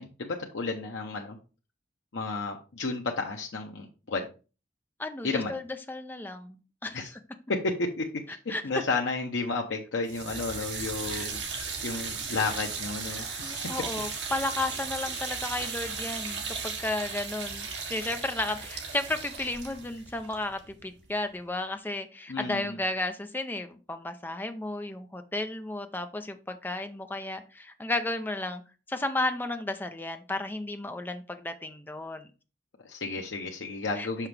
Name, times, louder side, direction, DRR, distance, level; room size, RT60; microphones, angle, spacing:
voice 1, 0.0-1.4 2.1-4.3 5.2-5.6 6.9-7.1 7.5-8.1 8.6-13.5 14.0-14.1 15.1-15.2 22.3-22.8 32.8-34.3, left 3 dB, 85° left, 2 dB, 0.7 m, -32 dB
voice 2, 5.0-5.6 5.9-7.0 8.5-8.6 10.7-11.3 13.1-28.6 28.9-32.3 34.0-34.1, left 2 dB, 10° left, 7 dB, 0.5 m, -33 dB
sound 1, 10.1-21.1, right 5 dB, 70° right, 1.5 m, -36 dB
5.9 x 5.8 x 3.3 m, 0.33 s
head